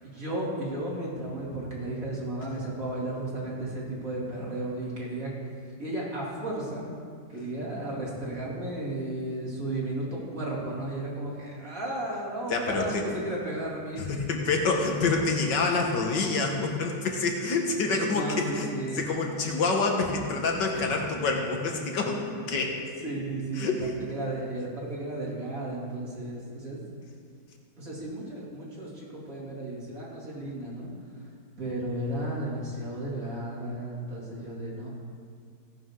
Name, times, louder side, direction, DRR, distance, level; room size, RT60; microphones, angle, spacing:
voice 1, 0.0-5.3 5.8-6.8 7.3-14.0 18.1-19.0 20.7-20.9 22.3-22.5 23.0-26.8 27.8-30.9 31.6-34.9, right 1 dB, 50° right, -5 dB, 3.4 m, -34 dB
voice 2, 12.5-13.0 14.0-22.8 23.6-23.9, left 3 dB, 80° left, 2 dB, 2.0 m, -27 dB
17.0 x 11.5 x 3.8 m, 2.2 s
omnidirectional pair, 1.9 m